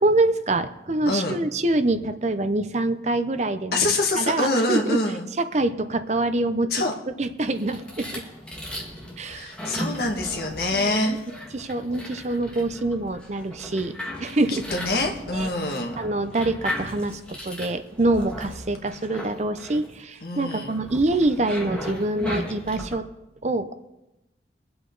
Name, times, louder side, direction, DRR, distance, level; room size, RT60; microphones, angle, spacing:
voice 1, 0.0-3.9 4.2-5.0 5.4-6.7 7.2-8.2 9.2-9.5 10.7-11.2 11.5-14.6 15.3-15.5 16.0-23.1 23.4-23.7, right 2 dB, 40° right, 10 dB, 0.6 m, -25 dB
voice 2, 1.1-1.4 3.7-5.2 6.7-6.9 9.3-11.1 14.5-16.0 20.2-20.8, left 2 dB, 60° left, 2 dB, 1.9 m, -25 dB
sound 1, 7.5-22.9, equal, 5° left, 1.9 m, -36 dB
23.0 x 7.9 x 4.0 m, 0.94 s
head